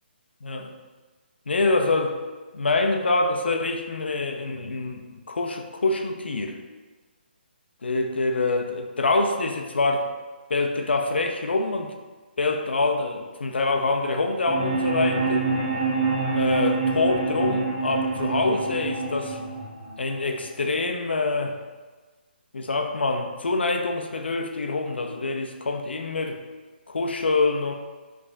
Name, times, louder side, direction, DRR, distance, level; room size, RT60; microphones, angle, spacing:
voice 1, 0.4-0.7 1.5-2.2 2.5-6.6 7.8-10.1 10.5-11.9 12.4-15.5 16.3-19.4 20.0-21.6 22.5-26.4 26.9-27.7, left 3 dB, 80° left, 4 dB, 0.6 m, -25 dB
sound 1, 14.5-20.5, right 4 dB, 25° right, 1.0 m, -26 dB
4.9 x 3.4 x 2.6 m, 1.3 s
hypercardioid pair, 150°, 6 cm